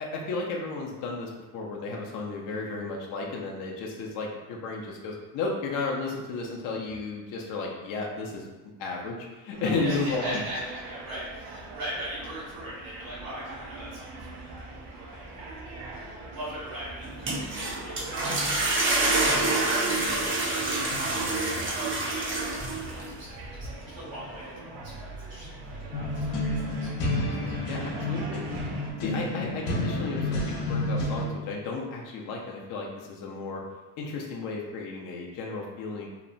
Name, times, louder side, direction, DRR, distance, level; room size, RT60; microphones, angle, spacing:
voice 1, 0.0-8.5 8.8-10.4 20.9-21.1 27.7-28.4 29.0-33.6 34.0-36.1, left 3 dB, 50° left, -1 dB, 0.5 m, -33 dB
sound 1, 9.5-28.9, right 2 dB, 60° right, 0.7 m, -42 dB
voice 2, 9.7-27.8 28.2-28.3 29.0-29.1, right 1 dB, 75° right, -10 dB, 1.3 m, -40 dB
sound 2, 17.0-23.1, right 2 dB, 30° right, 0.4 m, -27 dB
sound 3, 25.9-31.3, left 1 dB, 80° left, 0.7 m, -30 dB
2.8 x 2.0 x 2.5 m, 1.1 s
cardioid pair, 115°, 45 cm